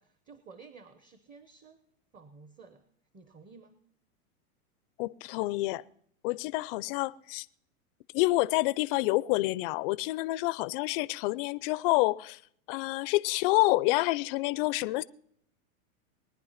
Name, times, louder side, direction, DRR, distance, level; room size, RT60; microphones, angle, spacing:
voice 1, 0.0-1.8 2.1-2.8 3.1-3.8, right 4 dB, 20° right, 1.0 m, -53 dB
voice 2, 5.0-5.8 6.2-7.5 8.1-12.4 12.7-15.0, left 20 dB, 40° left, 0.5 m, -28 dB
21.0 x 10.0 x 5.7 m
hypercardioid pair, 130°, 44 cm